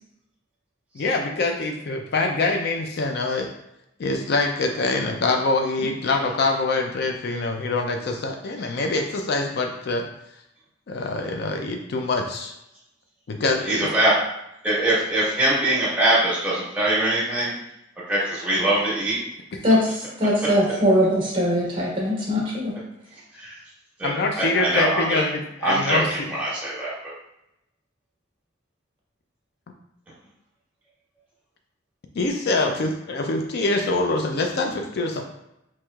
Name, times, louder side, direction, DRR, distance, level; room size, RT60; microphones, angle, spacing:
voice 1, 1.0-3.5 4.0-10.0 10.9-12.5 13.3-13.9 24.0-26.1 32.2-35.2, left 3 dB, 55° left, 4 dB, 0.4 m, -24 dB
voice 2, 13.6-14.2 14.6-17.6 18.1-19.2 23.3-23.6 24.0-25.2 25.6-27.1, right 1 dB, 5° right, -9 dB, 1.3 m, -23 dB
voice 3, 19.6-22.7, equal, 25° right, -4 dB, 1.2 m, -21 dB
4.5 x 3.0 x 2.3 m, 0.84 s
head